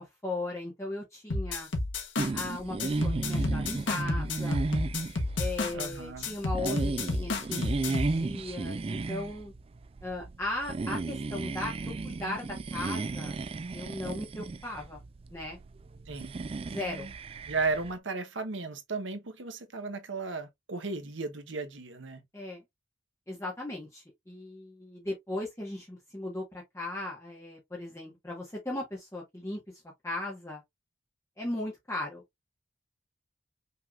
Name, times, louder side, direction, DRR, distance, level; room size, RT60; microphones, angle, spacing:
voice 1, 0.0-1.7 2.3-4.6 5.4-9.5 10.0-13.3 13.7-15.0 15.3-15.6 16.7-17.1 22.3-22.6 23.3-29.6 30.0-30.6 31.4-32.2, left 2 dB, 15° left, 1.3 m, -37 dB
sound 1, 1.3-2.5 2.8-5.9 6.2-8.2, left 2 dB, 80° left, 1.3 m, -31 dB
sound 2, 2.2-18.0, right 3 dB, 30° right, 0.3 m, -35 dB
voice 2, 5.7-6.3 16.1-16.4 17.5-22.2, right 3 dB, 85° right, 1.0 m, -35 dB
5.7 x 3.5 x 2.4 m
head